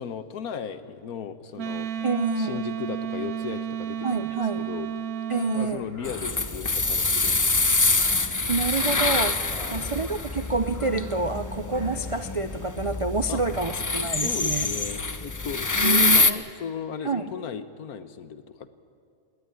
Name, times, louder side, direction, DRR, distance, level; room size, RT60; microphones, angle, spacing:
voice 1, 0.0-1.9 2.4-4.9 5.5-7.8 9.5-9.9 13.3-13.4 13.9-18.7, left 7 dB, 85° left, 12 dB, 1.5 m, -36 dB
Wind instrument woodwind instrument, 1.6-5.7, right 9 dB, 80° right, 1.3 m, -32 dB
voice 2, 2.0-2.7 4.0-4.7 5.3-5.9 8.5-14.7 15.8-16.3 17.0-17.3, right 3 dB, 50° right, 9 dB, 0.4 m, -28 dB
sound 1, 5.6-12.6, left 1 dB, 10° left, 7.0 m, -45 dB
sound 2, 6.0-16.3, left 3 dB, 30° left, 0.3 m, -25 dB
19.0 x 18.5 x 9.9 m, 2.4 s
omnidirectional pair, 1.5 m